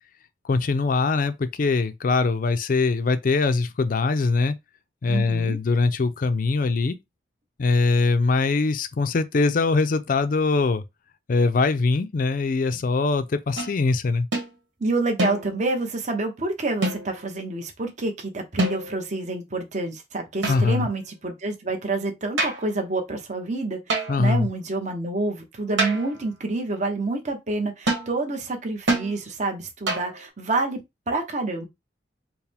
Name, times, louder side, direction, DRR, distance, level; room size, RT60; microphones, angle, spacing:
voice 1, 0.4-4.5 5.0-7.0 7.6-10.8 11.3-14.3 20.5-20.9 24.1-24.5, left 3 dB, 50° left, 0.4 m, -22 dB
voice 2, 5.1-5.6 14.8-30.8 31.1-31.7, right 2 dB, 40° right, 0.8 m, -28 dB
sound 1, 13.6-13.8 14.3-14.5 15.2-15.7 16.8-17.3 18.6-19.1 20.4-21.0 22.4-22.7 23.9-24.3 25.8-26.2 27.9-28.1 28.9-29.2 29.9-30.2, right 2 dB, 85° right, 1.3 m, -26 dB
4.6 x 2.1 x 3.4 m
head